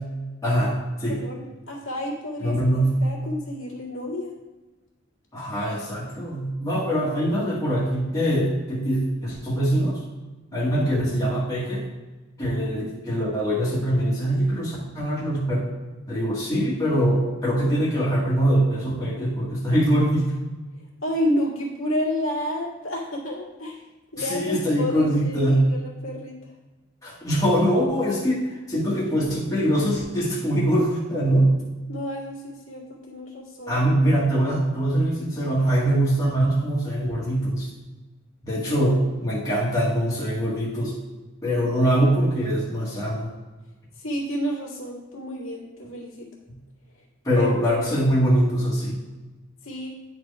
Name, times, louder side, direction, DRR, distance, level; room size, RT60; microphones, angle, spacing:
voice 1, 0.4-1.2 2.4-2.9 5.3-10.0 10.5-11.8 12.4-15.7 16.1-20.3 24.2-25.6 27.0-28.4 28.7-31.5 33.7-37.7 38.4-40.9 41.4-43.3 47.2-48.9, right 1 dB, 15° left, -8 dB, 1.7 m, -23 dB
voice 2, 1.1-2.6 3.0-4.4 10.5-10.9 21.0-23.8 24.1-26.3 31.9-33.8 38.6-38.9 44.0-46.3 47.4-47.8 49.6-49.9, left 1 dB, 75° left, -3 dB, 2.2 m, -30 dB
10.0 x 4.4 x 3.5 m, 1.2 s
head